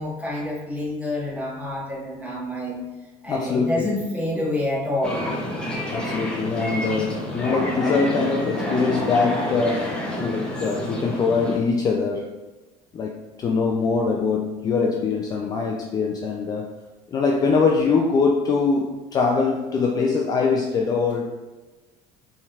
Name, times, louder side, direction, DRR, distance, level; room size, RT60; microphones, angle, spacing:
voice 1, 0.0-2.8 3.2-5.2, left 1 dB, 10° right, -5 dB, 1.4 m, -27 dB
voice 2, 3.3-3.9 5.9-12.3 12.9-16.7 17.1-21.3, left 4 dB, 30° left, 1 dB, 0.4 m, -23 dB
sound 1, 5.0-11.6, equal, 5° left, 0.8 m, -29 dB
5.4 x 3.3 x 2.4 m, 1.2 s
cardioid pair, 145°, 14 cm